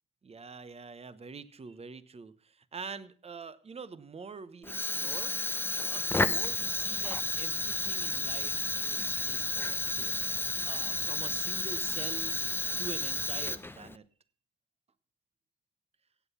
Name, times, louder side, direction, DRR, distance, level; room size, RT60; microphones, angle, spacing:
voice 1, 0.2-5.4 5.9-10.2 10.6-12.5 12.8-14.0, right 5 dB, 30° right, 15 dB, 1.1 m, -45 dB
Fire, 4.6-14.0, left 2 dB, 10° left, 0.7 m, -32 dB
16.5 x 8.1 x 5.7 m, 0.43 s
cardioid pair, 90°, 20 cm